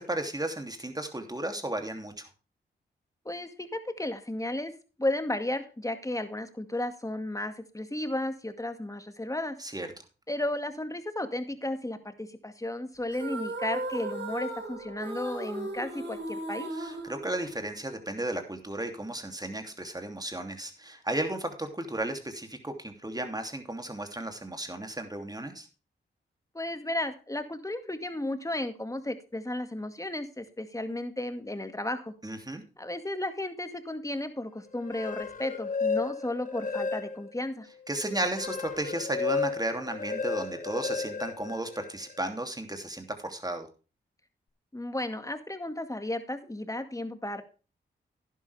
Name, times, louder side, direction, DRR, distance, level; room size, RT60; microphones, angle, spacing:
voice 1, 0.0-2.3 9.6-9.9 16.7-25.7 32.2-32.6 37.9-43.7, right 1 dB, 20° right, 5 dB, 2.8 m, -34 dB
voice 2, 3.3-4.7 5.0-9.6 10.3-16.7 26.5-32.1 32.8-37.7 44.7-47.4, left 1 dB, 15° left, 9 dB, 2.0 m, -34 dB
sound 1, 13.1-17.9, right 2 dB, 55° right, 4.2 m, -37 dB
sound 2, 34.7-37.4 37.9-42.2, left 4 dB, 40° left, 1.1 m, -33 dB
11.0 x 11.0 x 3.4 m, 0.33 s
supercardioid pair, 45°, 21 cm